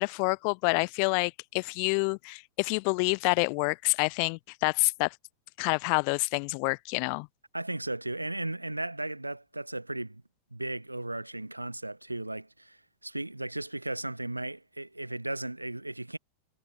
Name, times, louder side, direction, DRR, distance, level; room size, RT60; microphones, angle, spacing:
voice 1, 0.0-5.1 5.6-7.3, left 40 dB or more, 45° left, 0.5 m, -28 dB
voice 2, 7.5-10.2 10.5-16.2, right 2 dB, 85° right, 1.1 m, -36 dB
figure-of-eight pair, 90°, 0 cm